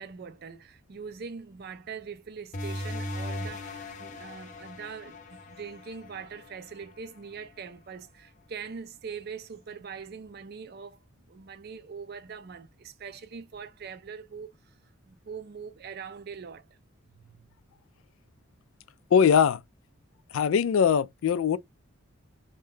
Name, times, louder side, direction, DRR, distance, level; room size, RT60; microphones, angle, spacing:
voice 1, 0.0-11.0 11.3-14.5 15.0-16.7 17.1-17.5, right 6 dB, 50° right, 0.4 m, -42 dB
sound 1, 2.5-7.7, left 1 dB, 35° left, 0.6 m, -39 dB
voice 2, 19.1-19.6 20.3-21.6, left 7 dB, 75° left, 0.3 m, -21 dB
2.6 x 2.2 x 3.6 m
head